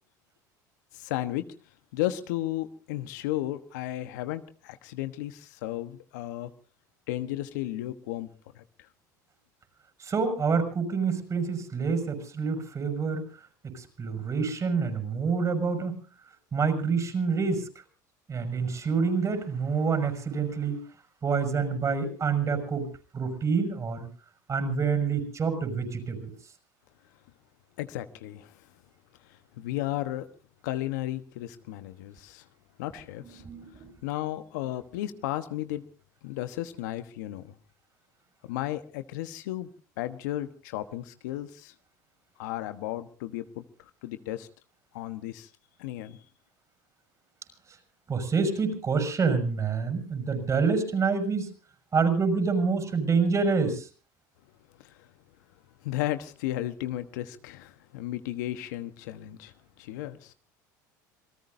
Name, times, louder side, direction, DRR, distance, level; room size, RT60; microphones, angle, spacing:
voice 1, 0.9-1.4 1.9-6.5 7.1-8.3 8.5-8.9 27.8-28.6 29.6-30.3 30.6-32.4 32.8-33.4 34.0-35.8 36.2-37.5 38.5-39.7 40.0-41.7 42.4-43.6 44.0-44.5 44.9-45.5 45.8-46.2 54.8-55.1 55.8-60.3, left 14 dB, 75° left, 10 dB, 1.2 m, -34 dB
voice 2, 10.0-13.2 13.6-16.0 16.5-17.7 18.3-20.8 21.2-22.9 23.1-24.1 24.5-26.3 33.2-33.9 47.7-47.8 48.1-51.5 51.9-53.9, right 5 dB, 35° right, 7 dB, 6.1 m, -27 dB
27.5 x 18.5 x 2.7 m, 0.37 s
hypercardioid pair, 80°, 10 cm